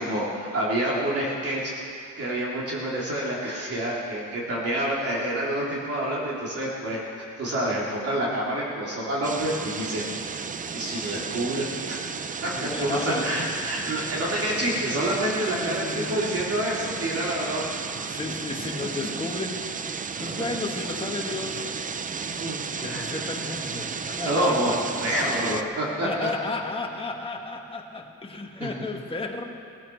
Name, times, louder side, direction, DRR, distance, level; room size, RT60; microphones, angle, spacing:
voice 1, 0.0-1.7 2.2-10.0 10.7-12.0 12.4-12.5 12.8-17.6 19.0-19.1 20.2-20.3 22.4-23.1 24.2-24.7 25.0-26.3 28.6-28.7, right 1 dB, 45° right, -5 dB, 3.2 m, -28 dB
sound 1, 9.2-25.6, right 5 dB, 25° right, 0.5 m, -33 dB
voice 2, 12.5-13.3 15.6-16.1 18.0-21.7 22.8-24.8 25.1-25.4 26.0-29.4, left 3 dB, 15° left, 2 dB, 1.5 m, -33 dB
19.5 x 14.0 x 4.6 m, 2.4 s
cardioid pair, 130°, 33 cm